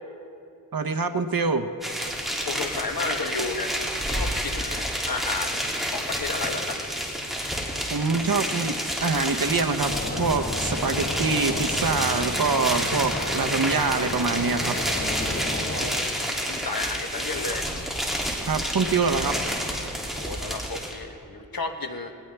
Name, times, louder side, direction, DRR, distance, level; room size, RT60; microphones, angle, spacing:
voice 1, 0.7-1.7 7.9-14.8 18.5-19.4, right 4 dB, 70° right, 7 dB, 0.9 m, -25 dB
sound 1, 1.8-20.9, equal, ahead, 2.6 m, -29 dB
voice 2, 2.5-3.7 4.1-6.8 15.7-17.7 20.2-22.1, left 3 dB, 75° left, 5 dB, 1.1 m, -33 dB
sound 2, 9.8-15.9, left 1 dB, 50° left, 2.4 m, -32 dB
19.0 x 18.5 x 3.4 m, 2.5 s
wide cardioid pair, 50°, 36 cm